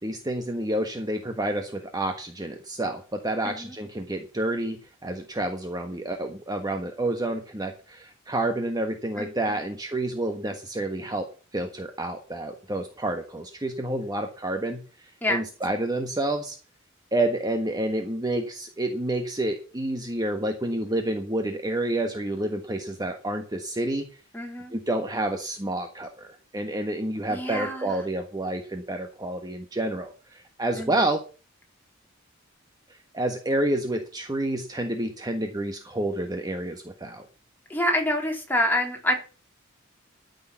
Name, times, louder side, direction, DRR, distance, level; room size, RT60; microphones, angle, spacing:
voice 1, 0.0-11.3 11.5-16.6 17.1-24.1 24.7-26.3 26.5-31.2 33.1-37.3, right 1 dB, 20° right, 5 dB, 1.3 m, -29 dB
voice 2, 3.4-3.7 9.2-9.6 15.2-15.4 24.3-24.7 27.3-28.0 30.8-31.1 37.7-39.1, left 1 dB, 10° left, 1 dB, 3.6 m, -27 dB
13.5 x 6.6 x 7.2 m, 0.35 s
head